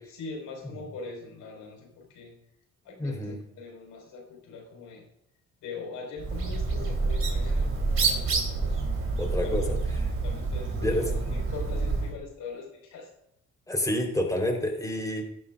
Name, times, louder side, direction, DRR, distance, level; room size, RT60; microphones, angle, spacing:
voice 1, 0.1-2.3 2.8-5.1 5.6-8.8 9.4-9.8 10.1-13.1, left 4 dB, 85° left, 0 dB, 5.3 m, -42 dB
voice 2, 3.0-3.4 9.2-9.6 10.7-11.1 13.7-15.2, left 1 dB, 10° left, 1 dB, 4.1 m, -28 dB
Bird, 6.2-12.2, right 3 dB, 45° right, 3.7 m, -28 dB
16.0 x 11.5 x 2.6 m, 0.81 s
cardioid pair, 90°, 30 cm